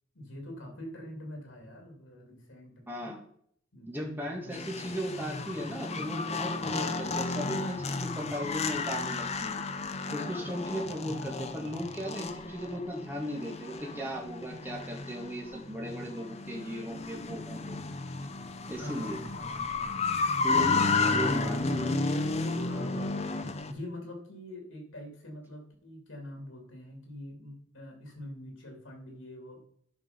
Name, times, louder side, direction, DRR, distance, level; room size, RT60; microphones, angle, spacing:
voice 1, 0.1-3.2 3.7-5.0 5.9-6.1 11.0-11.7 18.8-19.9 20.8-22.0 22.6-23.4 23.7-29.6, left 1 dB, 85° left, 2 dB, 3.0 m, -45 dB
voice 2, 2.9-3.2 3.9-9.6 10.1-17.8 18.7-19.2 20.4-22.0, equal, 10° right, -1 dB, 2.0 m, -37 dB
sound 1, 4.5-23.7, left 3 dB, 35° left, 0.7 m, -32 dB
10.5 x 5.5 x 5.3 m, 0.65 s
head